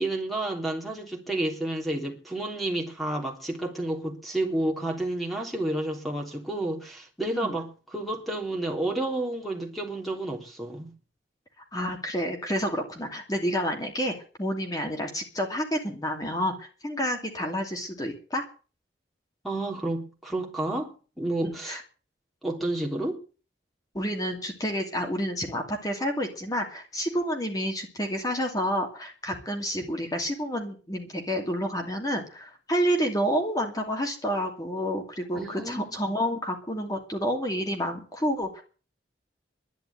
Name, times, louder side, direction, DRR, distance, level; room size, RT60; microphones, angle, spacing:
voice 1, 0.0-10.9 19.4-21.8 22.4-23.2 35.3-36.0, right 1 dB, ahead, 3.3 m, -30 dB
voice 2, 11.7-14.1 14.4-18.4 21.4-21.8 23.9-38.6, equal, 20° left, 2.6 m, -29 dB
11.5 x 10.5 x 9.4 m
head